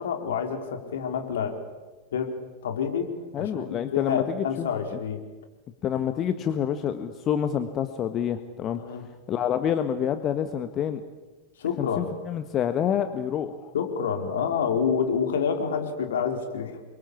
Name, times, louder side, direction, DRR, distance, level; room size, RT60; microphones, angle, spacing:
voice 1, 0.0-1.6 2.1-2.3 2.6-3.1 3.4-5.2 8.7-9.0 11.6-12.1 13.7-16.8, left 6 dB, 60° left, 5 dB, 4.2 m, -28 dB
voice 2, 3.3-4.7 5.8-8.8 9.3-11.0 11.8-13.7, left 9 dB, 30° left, 9 dB, 1.6 m, -27 dB
28.5 x 24.0 x 8.7 m, 1.2 s
figure-of-eight pair, 90°, 0 cm